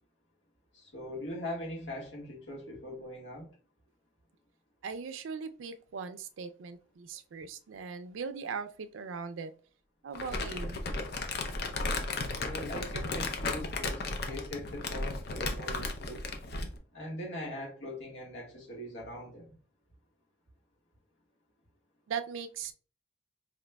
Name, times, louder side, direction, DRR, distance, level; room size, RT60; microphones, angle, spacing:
voice 1, 0.7-3.5 12.3-16.2 16.9-19.5, left 1 dB, 75° left, 1.5 m, -41 dB
voice 2, 4.8-9.5 10.0-10.8 22.1-22.7, right 5 dB, 90° right, 0.4 m, -39 dB
Crumpling crinkling, 10.1-16.8, left 2 dB, 55° left, 0.6 m, -35 dB
4.9 x 2.8 x 2.2 m
head